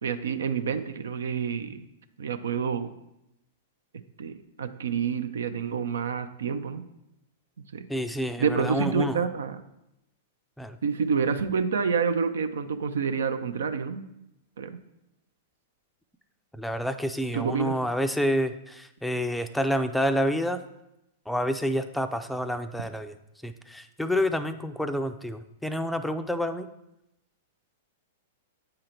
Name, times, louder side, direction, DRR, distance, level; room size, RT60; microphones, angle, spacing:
voice 1, 0.0-1.9 2.2-2.9 4.2-6.8 7.6-7.8 8.4-9.6 10.8-14.0 14.6-14.8 17.3-17.8, right 6 dB, 75° right, 10 dB, 0.5 m, -28 dB
voice 2, 7.9-9.2 10.6-10.8 16.6-20.6 21.3-23.1 23.4-26.7, equal, 5° left, 8 dB, 0.4 m, -28 dB
8.9 x 3.8 x 4.4 m, 0.87 s
hypercardioid pair, 110°, 0 cm